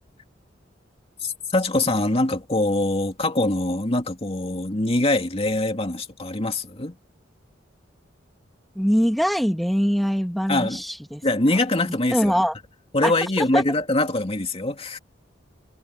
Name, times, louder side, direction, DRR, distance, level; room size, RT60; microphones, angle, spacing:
voice 1, 1.2-6.9 10.5-10.8 11.2-12.3 12.9-15.0, left 2 dB, 30° left, 2.6 m, -23 dB
voice 2, 8.8-11.2 11.5-11.6 11.8-12.6 13.0-13.6, equal, ahead, 2.0 m, -23 dB
head